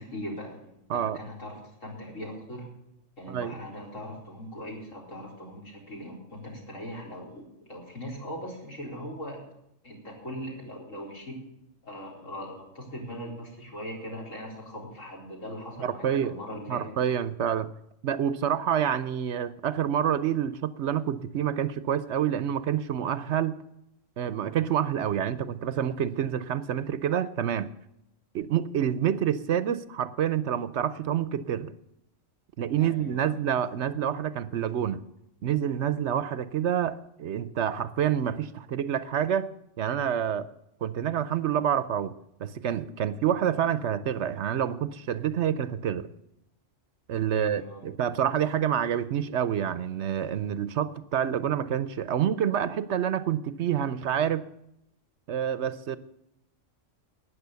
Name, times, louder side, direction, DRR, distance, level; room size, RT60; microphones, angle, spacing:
voice 1, 0.0-1.6 1.8-2.7 3.2-9.5 9.8-11.4 11.8-16.8 32.8-33.3 47.3-47.8, equal, 75° left, -1 dB, 4.6 m, -40 dB
voice 2, 15.8-16.4 16.7-17.7 18.0-23.6 24.2-27.7 28.3-31.7 32.6-35.0 35.4-39.5 39.8-40.5 40.8-42.1 42.4-46.1 47.1-54.4 55.3-56.0, right 9 dB, 65° right, 15 dB, 0.9 m, -27 dB
12.5 x 9.2 x 6.8 m, 0.82 s
omnidirectional pair, 1.3 m